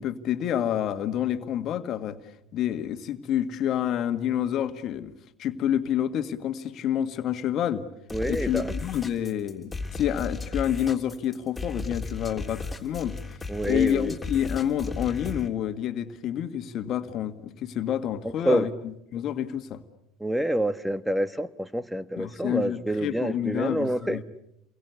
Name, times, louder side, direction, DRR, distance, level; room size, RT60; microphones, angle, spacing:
voice 1, 0.0-2.2 2.5-5.1 5.4-7.9 8.2-13.2 13.6-19.8 22.2-24.2, left 10 dB, 55° left, 9 dB, 1.8 m, -28 dB
sound 1, 8.1-15.5, left 3 dB, 15° left, 3.4 m, -35 dB
voice 2, 8.1-8.7 13.5-14.1 18.4-18.7 20.2-24.2, right 1 dB, 5° right, 13 dB, 1.2 m, -27 dB
29.0 x 23.0 x 8.4 m, 0.81 s
hypercardioid pair, 70°, 0 cm